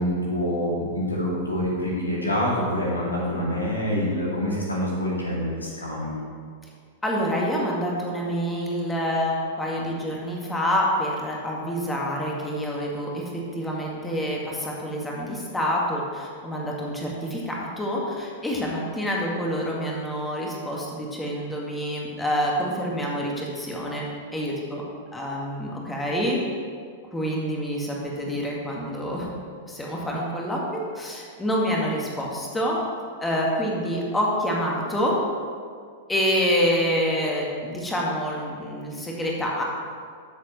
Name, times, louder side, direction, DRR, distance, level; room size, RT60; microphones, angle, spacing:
voice 1, 0.0-6.2, equal, 85° left, -4 dB, 2.4 m, -26 dB
voice 2, 7.0-13.2 13.5-24.8 25.1-26.4 27.1-29.3 29.6-32.8 33.2-35.2 36.1-39.6, equal, 10° left, -3 dB, 1.9 m, -27 dB
12.5 x 6.8 x 3.2 m, 2.1 s
figure-of-eight pair, 95°, 0 cm